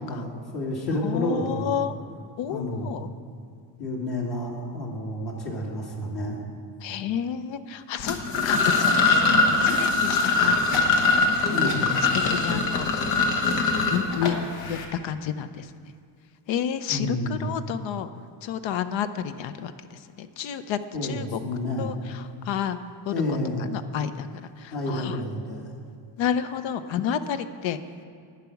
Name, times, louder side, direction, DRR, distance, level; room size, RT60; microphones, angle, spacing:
voice 1, 0.1-1.8 2.5-3.0 3.8-6.4 11.5-11.9 16.9-17.5 20.9-21.9 23.1-23.7 24.7-25.7, left 1 dB, 50° left, -2 dB, 2.1 m, -30 dB
voice 2, 1.0-1.9 2.4-3.1 6.8-8.2 8.4-10.6 12.3-12.9 13.9-15.7 16.5-18.1 18.4-19.7 20.2-21.4 21.8-22.8 23.1-23.2 23.7-24.3 24.6-25.2 26.2-27.8, left 9 dB, 65° left, 12 dB, 0.7 m, -30 dB
sound 1, 8.0-14.8, left 3 dB, 85° left, 1.3 m, -22 dB
11.0 x 4.8 x 8.2 m, 2.3 s
cardioid pair, 105°, 48 cm